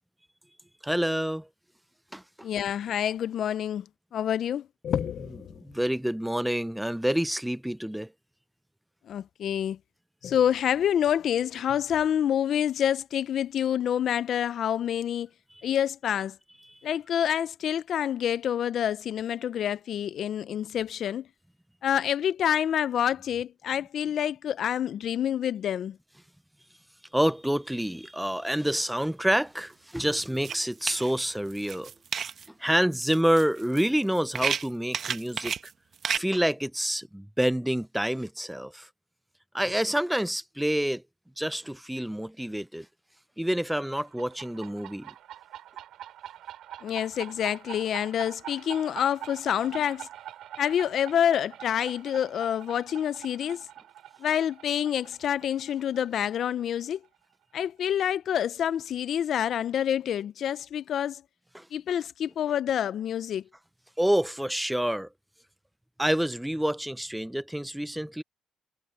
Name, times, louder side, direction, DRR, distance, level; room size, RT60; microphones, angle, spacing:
voice 1, 0.8-1.5 2.1-2.5 5.6-8.1 27.1-31.9 32.6-35.5 36.1-38.9 39.5-41.0 41.4-42.9 43.4-45.1 61.5-61.7 64.0-65.1 66.0-68.2, equal, 5° right, 0.4 m, -27 dB
voice 2, 2.4-3.8 4.1-5.5 9.1-9.8 10.2-15.3 15.6-16.4 16.8-21.3 21.8-26.0 46.8-50.1 50.6-53.7 54.2-57.0 57.5-61.2 61.7-63.4, left 9 dB, 65° left, 0.4 m, -27 dB
sound 1, 29.6-29.7 30.1-32.5 32.9-36.2, right 7 dB, 55° right, 1.2 m, -32 dB
sound 2, 43.8-57.1, right 12 dB, 80° right, 6.9 m, -44 dB
cardioid pair, 90°, 0 cm